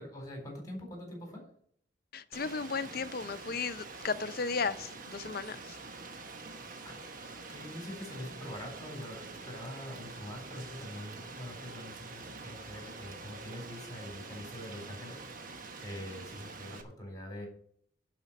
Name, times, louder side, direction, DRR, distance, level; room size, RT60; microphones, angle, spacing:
voice 1, 0.0-1.4 6.8-7.0 7.3-17.5, left 1 dB, 20° left, 2 dB, 3.9 m, -44 dB
voice 2, 2.1-5.8, left 5 dB, 55° left, 12 dB, 0.6 m, -35 dB
Rain, 2.3-16.8, right 3 dB, 45° right, 1.2 m, -46 dB
11.0 x 5.1 x 7.3 m, 0.62 s
head